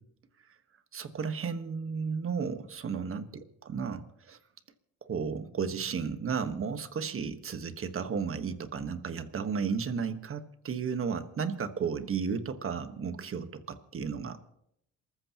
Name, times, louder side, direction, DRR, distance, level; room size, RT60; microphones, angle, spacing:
voice 1, 0.9-4.4 5.0-14.4, right 6 dB, 45° right, 9 dB, 1.4 m, -34 dB
28.0 x 14.5 x 3.0 m, 0.77 s
cardioid pair, 90°, 30 cm